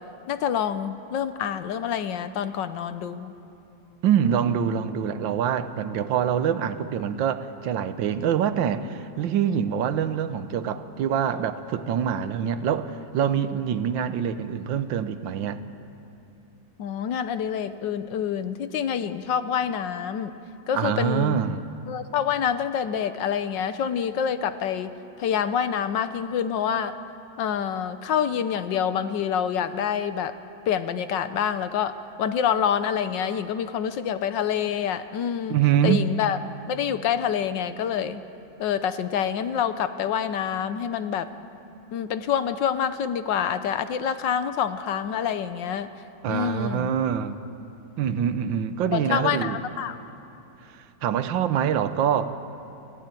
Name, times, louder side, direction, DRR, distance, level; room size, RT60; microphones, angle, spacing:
voice 1, 0.3-3.3 16.8-20.4 20.7-21.4 21.9-26.9 27.4-30.3 30.7-36.4 36.7-38.2 38.6-41.3 41.9-45.9 46.3-46.9 48.9-50.0, left 8 dB, 75° left, 11 dB, 1.5 m, -27 dB
voice 2, 4.0-15.6 20.7-21.6 35.5-36.1 46.2-47.4 48.0-49.6 50.7-52.4, right 8 dB, 80° right, 11 dB, 1.6 m, -25 dB
25.0 x 15.0 x 9.1 m, 2.8 s
omnidirectional pair, 2.1 m